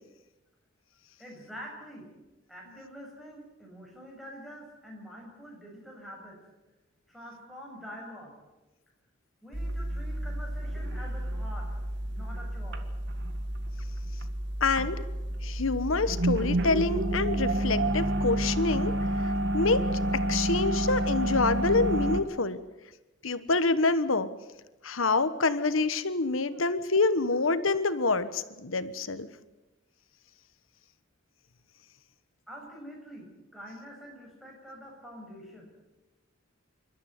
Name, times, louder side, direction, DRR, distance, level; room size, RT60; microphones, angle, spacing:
voice 1, 1.2-2.1 2.5-6.4 7.1-8.4 9.4-11.7 12.1-12.9 26.5-26.6 32.5-35.6, equal, ahead, -1 dB, 6.6 m, -46 dB
sound 1, 9.5-22.2, right 1 dB, 60° right, 1.7 m, -30 dB
voice 2, 14.6-15.0 15.4-18.9 19.2-19.9 20.3-22.6 23.2-24.3 24.8-29.3, left 3 dB, 90° left, 13 dB, 1.3 m, -27 dB
27.5 x 13.0 x 9.6 m, 1.1 s
head